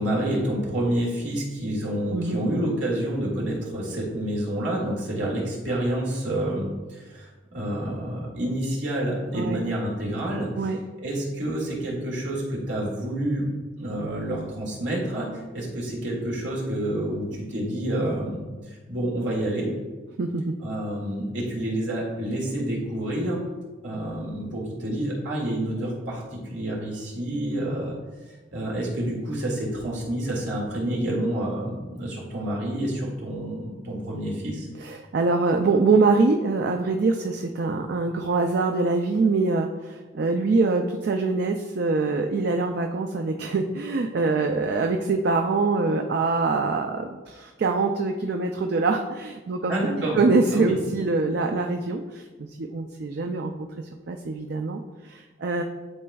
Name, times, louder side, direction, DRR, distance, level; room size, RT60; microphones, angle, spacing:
voice 1, 0.0-10.5 11.0-13.5 13.8-19.7 20.6-23.4 23.8-26.2 26.5-27.9 28.5-34.7 49.7-50.2 50.5-50.7, right 1 dB, 75° right, -3 dB, 2.0 m, -28 dB
voice 2, 20.2-20.5 34.8-49.7 50.2-52.2 52.6-53.5 54.1-55.6, right 3 dB, 60° right, 4 dB, 0.4 m, -24 dB
11.0 x 4.2 x 2.3 m, 1.3 s
head